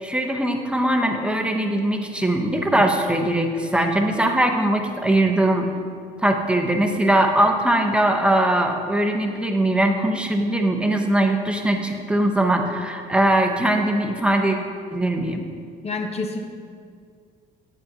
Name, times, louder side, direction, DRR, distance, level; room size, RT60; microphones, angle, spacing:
voice 1, 0.0-5.7 6.2-14.6 14.9-15.4, right 1 dB, 5° right, 3 dB, 0.8 m, -21 dB
voice 2, 15.8-16.4, left 3 dB, 40° left, 4 dB, 0.9 m, -28 dB
9.6 x 9.2 x 2.8 m, 2.2 s
cardioid pair, 110°, 17 cm